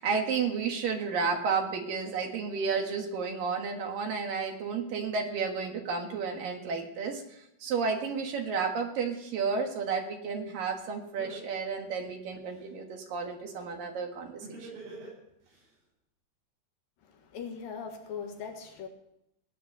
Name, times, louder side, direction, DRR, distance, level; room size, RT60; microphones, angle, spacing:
voice 1, 0.0-14.8, right 5 dB, 60° right, 3 dB, 3.1 m, -32 dB
Laughter, 10.7-10.8 11.2-12.6 14.4-15.6, right 2 dB, 90° right, 8.8 m, -45 dB
voice 2, 17.0-18.9, left 6 dB, 65° left, 4 dB, 3.1 m, -40 dB
19.0 x 10.0 x 6.7 m, 0.81 s
omnidirectional pair, 4.7 m